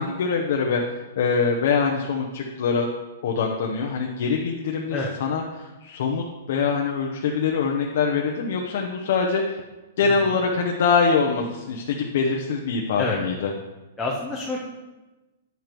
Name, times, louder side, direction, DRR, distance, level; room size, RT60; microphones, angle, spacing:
voice 1, 0.0-2.9 3.2-9.6 10.0-13.5, left 5 dB, 60° left, 1 dB, 0.8 m, -24 dB
voice 2, 14.0-14.6, left 2 dB, 10° left, -3 dB, 0.7 m, -27 dB
9.1 x 6.8 x 3.0 m, 1.1 s
hypercardioid pair, 160°, 0 cm